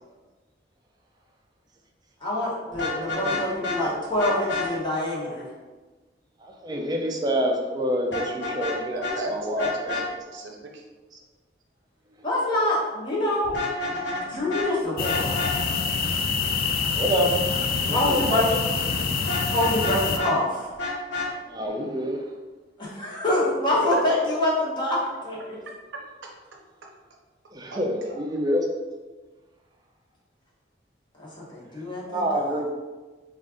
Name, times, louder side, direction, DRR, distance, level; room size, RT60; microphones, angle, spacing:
voice 1, 2.2-5.4 12.2-13.5 13.8-15.2 17.9-18.5 19.5-20.7 22.8-25.6 31.2-32.6, left 1 dB, 25° left, -6 dB, 1.0 m, -26 dB
Vehicle horn car horn honking, 2.7-3.8 4.2-4.7 8.1-8.8 9.0-9.1 9.6-10.0 13.4-14.2 14.5-14.7 15.0-15.5 19.3-20.3 20.8-21.3, left 3 dB, 75° left, 0.8 m, -29 dB
voice 2, 6.4-9.6 16.9-17.4 17.8-18.6 21.5-22.2 27.5-28.7 32.1-32.7, equal, 20° right, 2 dB, 0.4 m, -27 dB
voice 3, 8.9-10.8 23.7-24.0 26.2-26.3 27.7-28.2, right 2 dB, 90° right, 1 dB, 0.6 m, -34 dB
sound 1, 15.0-20.2, left 5 dB, 55° left, 0.4 m, -26 dB
3.8 x 2.4 x 3.6 m, 1.3 s
head